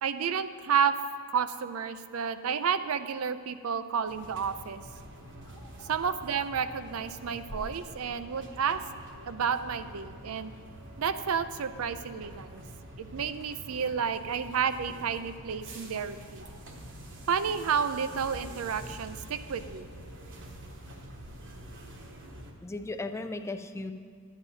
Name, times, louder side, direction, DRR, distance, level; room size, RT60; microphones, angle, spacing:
voice 1, 0.0-1.0 1.3-4.8 5.9-8.8 9.3-10.5 11.0-12.6 13.0-16.4 17.3-19.9, right 7 dB, 75° right, 11 dB, 0.5 m, -31 dB
sound 1, 4.1-22.5, right 1 dB, 60° right, 1.1 m, -46 dB
voice 2, 5.6-5.9 22.6-23.9, left 2 dB, 15° left, 8 dB, 0.3 m, -37 dB
12.0 x 9.7 x 2.8 m, 2.3 s
head